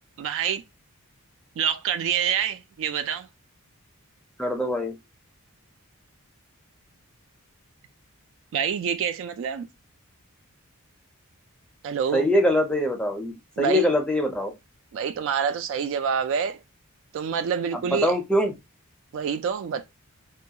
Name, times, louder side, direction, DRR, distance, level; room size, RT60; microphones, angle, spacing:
voice 1, 0.2-0.6 1.6-3.3 8.5-9.7 11.8-12.3 13.6-13.8 14.9-16.6 17.1-18.1 19.1-19.8, right 7 dB, 60° right, 0.3 m, -27 dB
voice 2, 4.4-5.0 12.1-14.5 17.7-18.5, left 1 dB, 5° left, 0.5 m, -23 dB
2.3 x 2.2 x 2.7 m
head